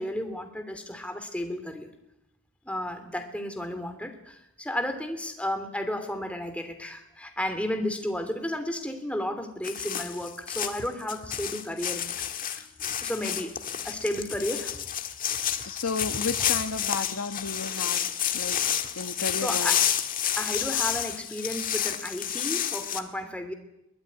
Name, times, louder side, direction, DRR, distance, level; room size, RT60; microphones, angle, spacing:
voice 1, 0.0-1.9 2.6-12.1 12.4-12.6 13.0-13.5 13.8-14.7 18.6-18.7 19.4-19.9 20.4-23.5, left 1 dB, 5° left, 7 dB, 2.9 m, -33 dB
sound 1, 9.6-23.0, left 10 dB, 40° left, 1.7 m, -30 dB
voice 2, 15.7-18.1 18.3-18.6 19.0-19.8, left 4 dB, 90° left, 10 dB, 1.3 m, -32 dB
23.0 x 20.5 x 9.9 m, 0.86 s
head